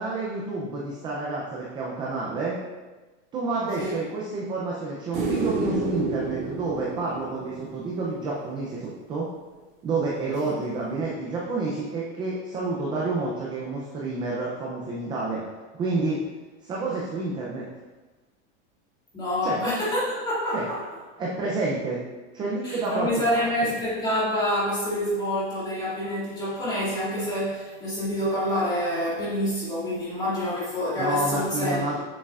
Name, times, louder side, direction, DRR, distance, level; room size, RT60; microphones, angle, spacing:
voice 1, 0.0-2.6 3.3-9.3 9.8-15.4 15.7-16.2 16.6-17.6 19.4-19.6 20.5-20.6 21.2-22.0 22.3-23.1 23.3-23.7 31.0-32.0, right 3 dB, 15° right, -4 dB, 0.4 m, -29 dB
sound 1, 5.1-8.4 11.0-11.1, right 4 dB, 45° right, 1.9 m, -30 dB
voice 2, 19.1-20.8 22.6-32.0, equal, 10° left, -8 dB, 2.0 m, -27 dB
7.4 x 6.4 x 2.4 m, 1.2 s
supercardioid pair, 165°, 36 cm